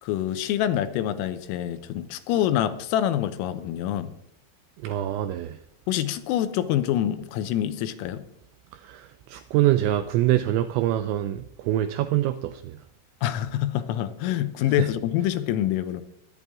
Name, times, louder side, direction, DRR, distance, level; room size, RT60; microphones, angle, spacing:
voice 1, 0.0-4.1 5.9-8.2 13.2-16.0, left 12 dB, 85° left, 3.5 m, -26 dB
voice 2, 4.8-5.6 8.7-12.8 14.8-14.9, right 13 dB, 85° right, 2.6 m, -25 dB
22.5 x 8.9 x 3.6 m
omnidirectional pair, 5.8 m